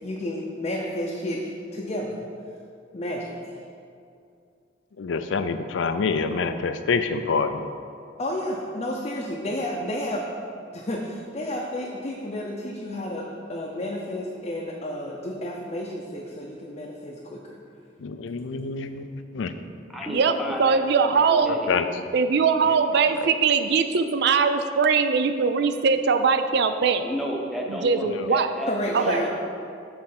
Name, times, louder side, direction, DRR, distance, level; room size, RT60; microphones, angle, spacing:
voice 1, 0.0-2.2 2.9-3.6 8.2-10.3 10.7-17.6 28.7-29.3, left 1 dB, 35° left, -2 dB, 0.6 m, -31 dB
voice 2, 5.0-7.7 18.0-19.6 21.7-21.9 23.1-23.3, left 5 dB, 85° left, 9 dB, 0.4 m, -26 dB
voice 3, 19.9-20.8 21.3-21.9 27.0-29.3, equal, ahead, -2 dB, 0.8 m, -32 dB
voice 4, 20.6-21.6 22.1-27.0 27.8-28.5 28.9-29.2, right 5 dB, 60° right, 9 dB, 0.4 m, -21 dB
7.5 x 4.3 x 5.9 m, 2.4 s
head